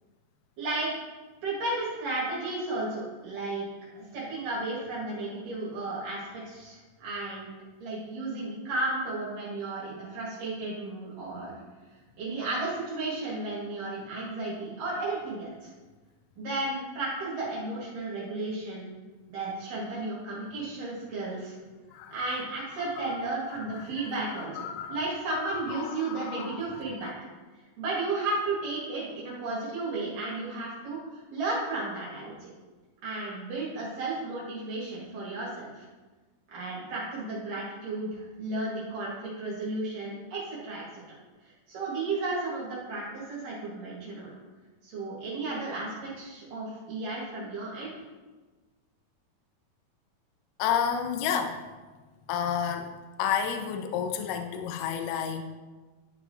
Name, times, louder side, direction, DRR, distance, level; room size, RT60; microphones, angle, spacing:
voice 1, 0.6-0.9 1.4-3.7 4.1-7.5 7.8-11.6 12.2-15.7 16.4-18.9 19.3-21.5 22.1-24.6 24.9-27.1 27.8-31.0 31.3-32.3 33.0-35.5 35.8-35.9 36.5-41.2 41.7-44.3 44.8-47.9, right 2 dB, 65° right, -7 dB, 3.3 m, -33 dB
voice 2, 22.7-27.1 50.6-51.6 52.3-52.9 53.2-55.4, left 8 dB, 80° left, 5 dB, 2.0 m, -32 dB
12.0 x 5.6 x 2.7 m, 1.3 s
omnidirectional pair, 4.1 m